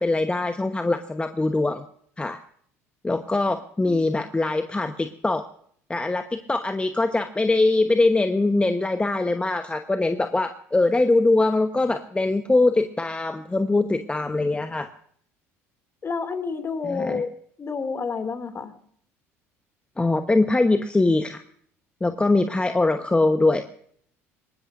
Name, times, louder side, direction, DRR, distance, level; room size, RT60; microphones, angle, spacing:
voice 1, 0.0-1.8 2.2-2.4 3.0-5.5 5.9-14.9 16.9-17.2 20.0-21.4 22.0-23.6, left 2 dB, 15° left, 8 dB, 1.1 m, -22 dB
voice 2, 16.0-17.3 17.6-18.7, left 5 dB, 35° left, 9 dB, 2.6 m, -29 dB
23.0 x 19.0 x 2.6 m, 0.62 s
hypercardioid pair, 65°, 7 cm